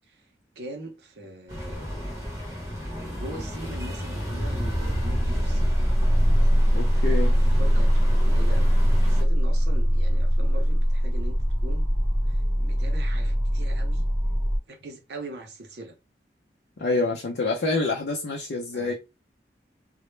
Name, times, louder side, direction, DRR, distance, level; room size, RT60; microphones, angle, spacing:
voice 1, 0.6-2.0 3.0-5.8 7.2-8.8 9.1-11.9 12.3-14.0 14.7-16.0 18.7-18.9, right 1 dB, 70° right, 0.6 m, -42 dB
sound 1, 1.5-9.2, equal, 15° right, 0.7 m, -34 dB
sound 2, 4.1-14.6, equal, 25° left, 0.7 m, -22 dB
voice 2, 6.7-7.3 16.8-18.9, left 3 dB, 75° left, 0.5 m, -27 dB
2.0 x 2.0 x 3.1 m
head